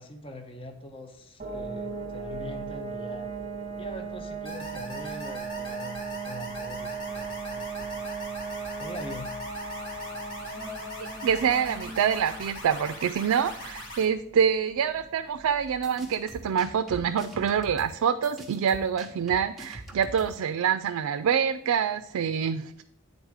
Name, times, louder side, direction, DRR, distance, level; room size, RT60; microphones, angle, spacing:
voice 1, 0.0-3.3 3.7-8.0 8.8-9.3, left 1 dB, 25° left, 6 dB, 0.6 m, -43 dB
sound 1, 1.4-16.0, right 4 dB, 30° right, 0.8 m, -38 dB
sound 2, 4.4-14.0, equal, 60° left, 2.0 m, -41 dB
voice 2, 11.2-22.8, right 7 dB, 80° right, 9 dB, 0.3 m, -26 dB
sound 3, 15.7-20.5, right 1 dB, ahead, 0.9 m, -44 dB
9.4 x 4.0 x 4.8 m, 0.72 s
head